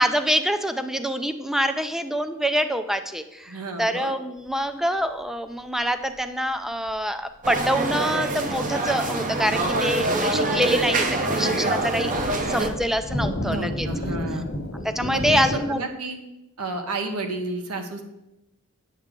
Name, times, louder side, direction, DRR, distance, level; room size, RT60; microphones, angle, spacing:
voice 1, 0.0-13.9 14.8-15.8, equal, ahead, 8 dB, 0.4 m, -26 dB
voice 2, 3.5-4.1 13.4-14.5 15.1-16.2 16.6-18.0, right 2 dB, 75° right, 5 dB, 1.1 m, -31 dB
sound 1, 6.9-7.0 8.9-15.7, equal, 50° left, 1.1 m, -33 dB
sound 2, 7.4-12.7, right 2 dB, 35° right, 0.8 m, -25 dB
8.9 x 6.9 x 3.7 m, 0.94 s
head